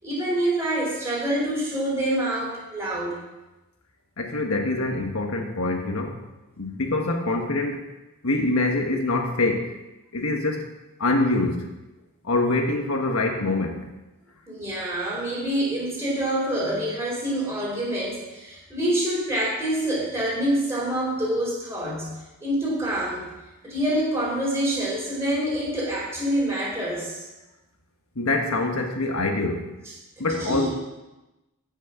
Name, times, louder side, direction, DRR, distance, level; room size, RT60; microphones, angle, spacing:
voice 1, 0.0-3.2 14.5-22.1 22.4-23.3 23.6-27.3 30.2-30.7, right 1 dB, 10° right, -5 dB, 4.9 m, -26 dB
voice 2, 4.2-6.2 6.6-7.8 8.2-9.8 10.1-10.7 11.0-11.7 12.2-13.9 28.1-29.7 30.2-30.7, left 2 dB, 70° left, 3 dB, 1.4 m, -25 dB
15.5 x 6.2 x 6.0 m, 1.0 s
head